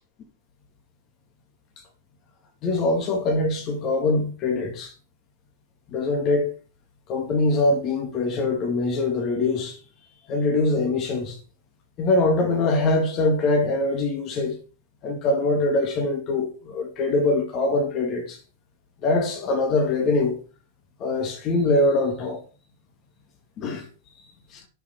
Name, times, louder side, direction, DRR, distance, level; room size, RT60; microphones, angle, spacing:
voice 1, 2.6-4.9 5.9-6.5 7.1-9.8 10.3-11.4 12.0-14.6 15.0-18.4 19.0-20.4 21.0-22.4 23.6-23.8 24.5-24.6, left 2 dB, 35° left, 2.6 m, -23 dB
10.5 x 7.0 x 5.3 m
figure-of-eight pair, 90°, 0 cm